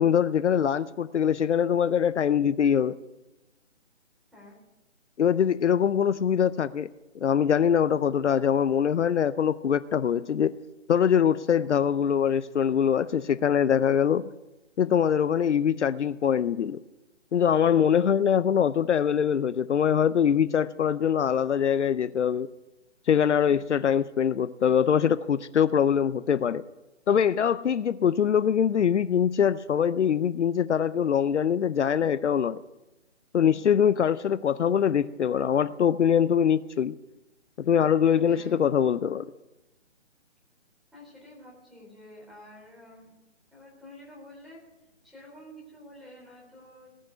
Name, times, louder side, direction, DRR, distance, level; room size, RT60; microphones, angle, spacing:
voice 1, 0.0-3.0 5.2-6.9 7.1-10.6 10.9-14.3 14.8-16.8 17.3-22.5 23.1-26.6 27.1-32.6 33.3-36.9 37.6-39.2, left 8 dB, 70° left, 15 dB, 0.7 m, -23 dB
voice 2, 38.2-38.6 40.9-43.1 43.5-44.6 45.0-46.9, left 1 dB, ahead, -5 dB, 3.8 m, -49 dB
19.0 x 6.5 x 9.3 m, 1.0 s
hypercardioid pair, 150°, 36 cm